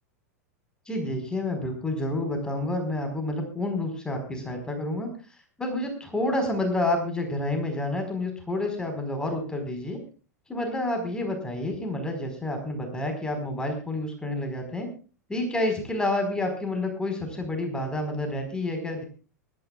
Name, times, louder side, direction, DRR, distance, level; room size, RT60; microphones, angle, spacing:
voice 1, 0.9-5.1 5.6-10.0 10.5-14.9 15.3-19.0, left 1 dB, 10° left, 4 dB, 4.7 m, -29 dB
24.0 x 13.5 x 2.4 m, 0.36 s
figure-of-eight pair, 90°, 9 cm